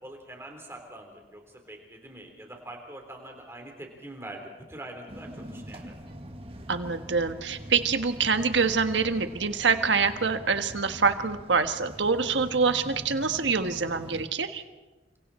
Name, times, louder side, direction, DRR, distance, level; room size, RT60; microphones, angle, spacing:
voice 1, 0.0-5.9, right 1 dB, 15° right, 2 dB, 3.9 m, -44 dB
sound 1, 5.1-14.2, equal, 30° right, 1.8 m, -43 dB
voice 2, 6.7-14.6, right 5 dB, 90° right, 8 dB, 1.4 m, -25 dB
30.0 x 26.5 x 4.4 m, 1.2 s
head